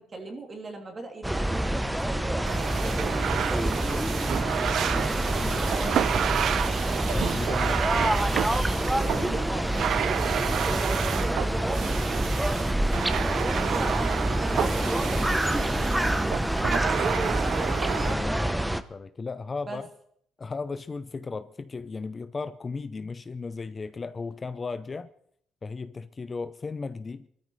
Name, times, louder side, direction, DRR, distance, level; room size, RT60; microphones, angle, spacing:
voice 1, 0.0-4.2 4.8-6.3 8.9-13.0 13.5-17.8 19.7-19.8, right 2 dB, 35° right, 2.9 m, -39 dB
sound 1, 1.2-18.8, right 1 dB, 5° right, 0.8 m, -27 dB
sound 2, 2.4-18.1, right 9 dB, 70° right, 0.5 m, -30 dB
voice 2, 7.1-8.0 13.8-14.0 18.0-19.8 20.4-25.1 25.6-27.3, left 4 dB, 35° left, 0.6 m, -35 dB
23.5 x 13.5 x 3.2 m
cardioid pair, 90°, 0 cm